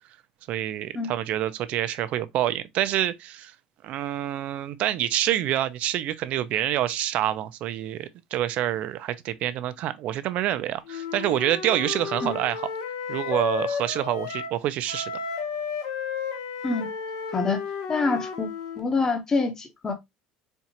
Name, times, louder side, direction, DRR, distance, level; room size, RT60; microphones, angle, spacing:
voice 1, 0.5-3.5 3.8-12.7 13.1-15.1, right 12 dB, 55° right, 0.4 m, -27 dB
Wind instrument woodwind instrument, 10.9-14.6 14.9-18.8, left 6 dB, 85° left, 0.7 m, -33 dB
voice 2, 17.9-18.5 18.8-19.9, left 3 dB, 20° left, 0.7 m, -26 dB
4.4 x 2.4 x 2.7 m
cardioid pair, 145°, 3 cm